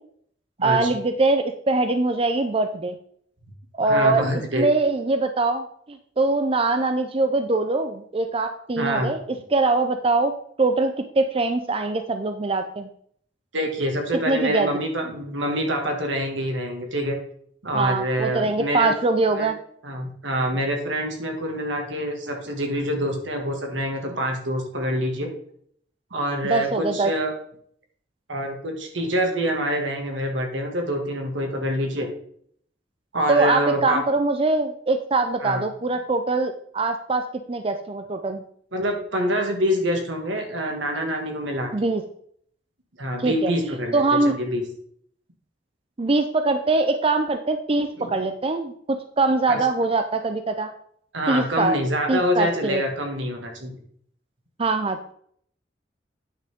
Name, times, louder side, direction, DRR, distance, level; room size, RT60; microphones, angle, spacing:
voice 1, 0.6-3.0 3.8-4.3 4.6-10.3 10.6-12.9 14.3-14.7 17.7-19.6 26.4-27.1 33.3-37.2 37.5-38.4 41.7-42.0 43.2-44.3 46.0-48.7 49.2-50.7 51.3-51.8 52.1-52.8 54.6-55.1, right 3 dB, 30° right, 7 dB, 0.5 m, -23 dB
voice 2, 3.8-4.7 8.8-9.1 13.5-17.2 17.6-18.9 19.3-19.5 19.8-25.3 26.1-27.3 28.3-32.1 33.1-34.0 35.4-35.6 38.7-41.7 43.0-44.6 48.0-48.1 49.5-49.6 51.1-53.8, equal, 80° right, 2 dB, 2.0 m, -26 dB
9.3 x 6.4 x 3.7 m, 0.63 s
head